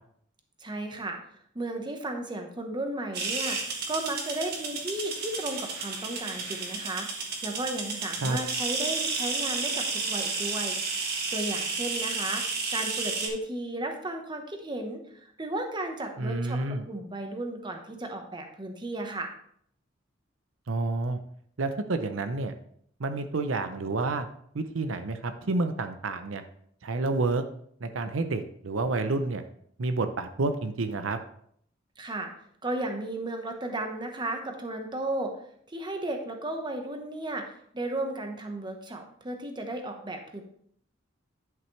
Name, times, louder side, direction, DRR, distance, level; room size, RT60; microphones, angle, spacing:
voice 1, 0.6-1.2 1.5-10.8 11.3-12.4 12.7-15.0 15.4-16.6 16.9-19.3 32.0-32.3 32.6-35.3 35.7-40.4, right 1 dB, 25° right, 4 dB, 1.1 m, -34 dB
sound 1, 3.1-13.3, right 4 dB, 55° right, 1.5 m, -32 dB
voice 2, 16.2-16.8 20.7-21.2 21.6-22.5 23.0-24.3 24.5-26.4 26.8-27.4 27.8-29.4 29.8-31.2, right 3 dB, 85° right, 9 dB, 0.7 m, -29 dB
10.5 x 5.9 x 3.2 m, 0.65 s
head